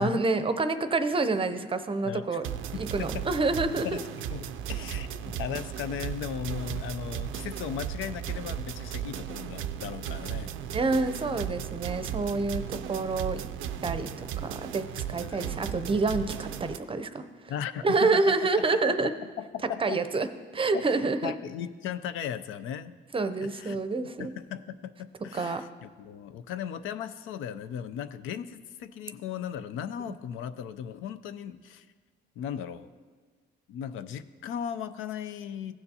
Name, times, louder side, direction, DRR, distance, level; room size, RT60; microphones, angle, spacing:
voice 1, 0.0-2.4 2.7-4.0 5.1-5.2 10.7-13.4 13.8-17.2 17.8-19.1 19.8-20.3 20.5-21.4 23.1-24.3 25.3-25.6 30.1-30.2, right 3 dB, 25° right, 10 dB, 0.6 m, -28 dB
voice 2, 2.0-2.4 3.0-3.2 3.8-4.0 4.3-10.5 15.2-15.5 17.5-18.3 18.9-20.0 20.7-22.9 23.4-23.8 24.2-31.8 32.4-32.9 33.7-35.7, left 9 dB, 85° left, 12 dB, 0.4 m, -37 dB
sound 1, 2.4-16.8, right 10 dB, 85° right, 0.4 m, -36 dB
15.5 x 6.9 x 2.8 m, 1.4 s
cardioid pair, 90°, 20 cm